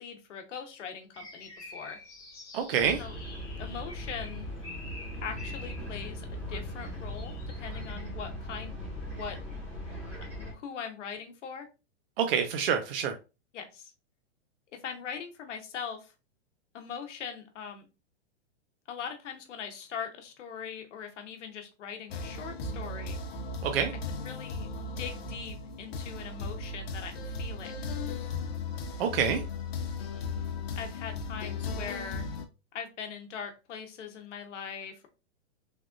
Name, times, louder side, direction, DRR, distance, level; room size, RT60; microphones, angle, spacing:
voice 1, 0.0-2.0 3.0-3.1 3.6-4.5 5.2-8.7 9.1-9.4 10.3-11.7 13.5-13.9 14.7-16.1 16.7-17.9 18.9-23.2 24.1-24.7 25.0-27.8 30.8-32.3 32.7-35.1, left 7 dB, 80° left, 4 dB, 0.9 m, -41 dB
sound 1, 1.1-6.0 6.8-7.9, left 2 dB, 20° left, 1.2 m, -48 dB
voice 2, 2.5-3.0 12.2-13.2 23.6-23.9 29.0-29.4, right 7 dB, 55° right, 5 dB, 0.5 m, -27 dB
sound 2, 2.8-10.5, equal, 5° right, 0.6 m, -39 dB
sound 3, 22.1-32.5, left 3 dB, 60° left, 0.6 m, -36 dB
3.4 x 2.3 x 2.4 m, 0.29 s
supercardioid pair, 165°, 35 cm